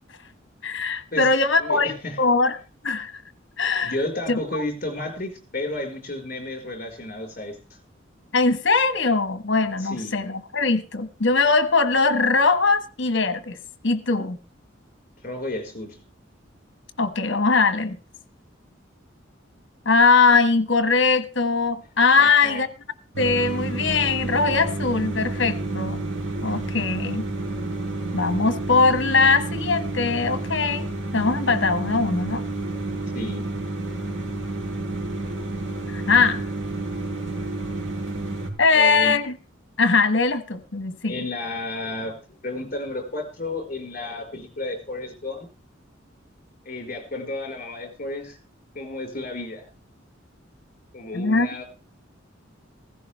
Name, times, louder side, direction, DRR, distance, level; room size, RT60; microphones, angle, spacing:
voice 1, 0.6-2.6 2.8-3.1 3.6-3.9 4.3-4.6 8.3-13.6 13.8-14.4 17.0-18.0 19.8-22.7 23.2-26.0 26.4-27.3 28.1-30.9 31.1-32.4 35.9-36.5 38.6-39.4 39.8-41.1 51.1-51.5, left 4 dB, 65° left, 1.4 m, -21 dB
voice 2, 1.6-2.2 3.8-7.6 9.8-10.1 15.2-16.0 22.2-22.6 33.1-33.5 38.7-39.2 41.1-42.1 42.4-45.5 46.6-48.4 48.7-49.7 50.9-51.6, left 2 dB, 40° left, 4.6 m, -32 dB
sound 1, 23.1-38.5, right 2 dB, 85° right, 4.5 m, -30 dB
15.5 x 15.5 x 3.4 m
head